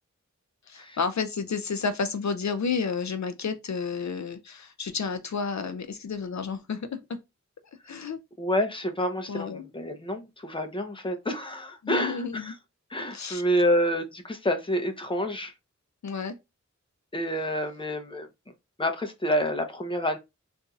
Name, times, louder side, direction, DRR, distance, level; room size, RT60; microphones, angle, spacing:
voice 1, 0.7-7.2 7.9-8.2 9.3-9.6 11.8-12.5 13.1-13.4 16.0-16.4, left 5 dB, 70° left, 0.5 m, -31 dB
voice 2, 8.4-12.5 12.9-15.5 17.1-18.3 18.8-20.2, equal, 20° left, 0.6 m, -28 dB
3.9 x 2.6 x 2.3 m
wide cardioid pair, 50°, 29 cm